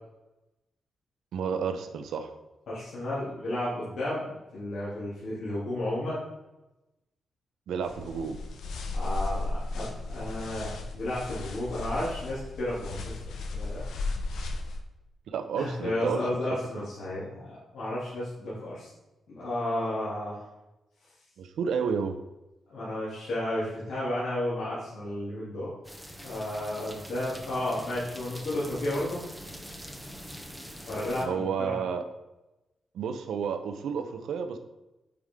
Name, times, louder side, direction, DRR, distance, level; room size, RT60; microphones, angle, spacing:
voice 1, 1.3-2.3 7.7-8.4 15.3-16.2 21.4-22.2 31.2-32.0 32.9-34.6, right 6 dB, 90° right, 7 dB, 0.8 m, -31 dB
voice 2, 2.7-4.2 4.5-6.2 8.9-13.2 13.5-13.9 15.5-18.9 19.3-20.4 22.7-25.7 26.2-29.2 30.9-31.8, left 1 dB, 65° left, -10 dB, 2.8 m, -32 dB
sound 1, 7.8-14.8, left 2 dB, 85° left, 1.0 m, -35 dB
sound 2, 25.8-31.3, equal, ahead, 0.7 m, -44 dB
9.4 x 5.0 x 3.7 m, 0.99 s
wide cardioid pair, 175°, 0 cm